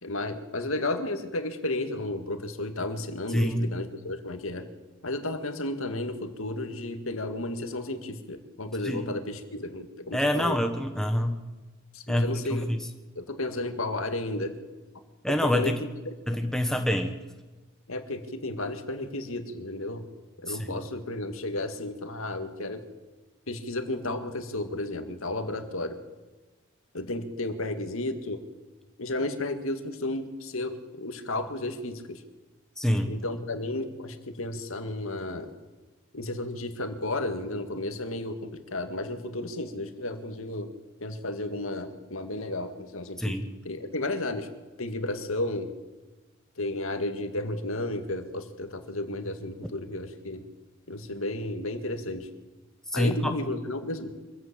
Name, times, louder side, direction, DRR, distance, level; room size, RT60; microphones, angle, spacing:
voice 1, 0.0-4.7 5.0-10.6 11.9-12.7 13.2-14.5 15.5-16.1 17.9-20.0 20.4-22.8 23.5-26.0 26.9-28.4 29.0-32.2 33.1-35.5 36.1-40.7 41.0-43.4 43.6-44.5 44.8-45.7 46.6-50.5 50.9-52.3 52.9-54.1, left 2 dB, 75° left, 8 dB, 2.1 m, -33 dB
voice 2, 3.3-3.7 8.8-9.1 10.1-11.4 12.1-12.9 15.2-15.8 16.3-17.1 20.5-20.8 32.8-33.1 43.2-43.5 52.9-53.3, equal, ahead, 5 dB, 1.4 m, -26 dB
24.5 x 14.5 x 8.6 m, 1.2 s
head